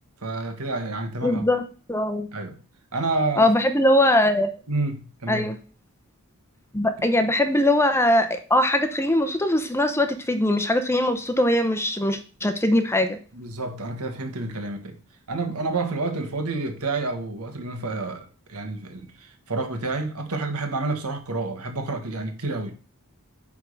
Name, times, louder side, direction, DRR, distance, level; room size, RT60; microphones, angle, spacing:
voice 1, 0.2-1.5 2.3-2.5 2.9-3.5 4.7-5.5 13.3-15.0 15.3-22.7, right 3 dB, 90° right, 1.6 m, -29 dB
voice 2, 1.2-2.3 3.4-4.5 5.3-5.6 6.7-13.2, left 1 dB, 10° left, 0.8 m, -21 dB
9.2 x 3.7 x 6.5 m
head